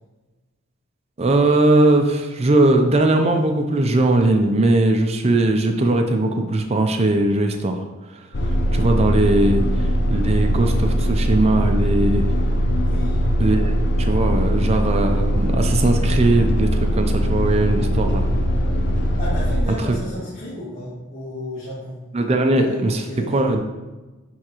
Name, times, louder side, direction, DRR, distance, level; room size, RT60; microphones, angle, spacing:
voice 1, 1.2-8.3 8.7-12.2 13.4-13.7 14.0-18.3 19.8-20.2 22.1-23.6, right 2 dB, 30° right, 4 dB, 0.4 m, -19 dB
sound 1, 8.3-19.6, equal, 55° left, 0.7 m, -20 dB
voice 2, 12.8-13.5 19.2-22.0 22.6-23.4, left 1 dB, 35° left, -12 dB, 1.8 m, -33 dB
9.5 x 3.5 x 3.0 m, 1.2 s
head